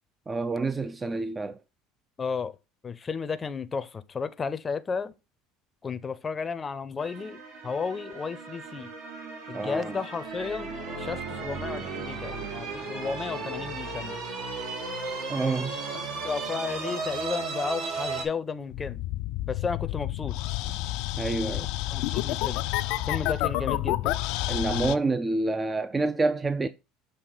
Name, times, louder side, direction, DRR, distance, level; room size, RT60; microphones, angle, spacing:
voice 1, 0.3-1.6 9.5-10.0 15.3-15.7 21.2-21.7 24.5-26.7, right 3 dB, 20° right, 0.4 m, -28 dB
voice 2, 2.2-2.6 2.8-5.1 5.8-8.9 9.5-10.7 11.0-14.2 15.9-19.0 19.5-20.4 21.9-22.6 23.1-24.1, left 5 dB, 30° left, 0.6 m, -33 dB
sound 1, 7.0-18.2, right 4 dB, 70° right, 2.1 m, -35 dB
sound 2, 18.7-25.0, left 16 dB, 70° left, 0.4 m, -29 dB
7.2 x 2.8 x 4.9 m
hypercardioid pair, 85°, 0 cm